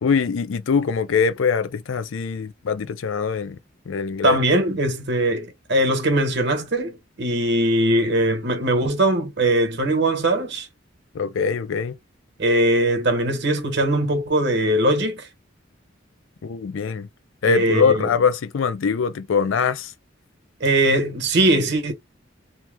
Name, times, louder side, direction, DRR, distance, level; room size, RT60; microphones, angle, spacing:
voice 1, 0.0-3.6 3.9-4.4 11.1-11.9 16.4-17.1 17.4-19.9, left 6 dB, 85° left, 0.4 m, -22 dB
voice 2, 4.2-10.7 12.4-15.3 17.5-18.1 20.6-21.9, right 1 dB, 65° right, 1.0 m, -21 dB
2.9 x 2.1 x 3.3 m
head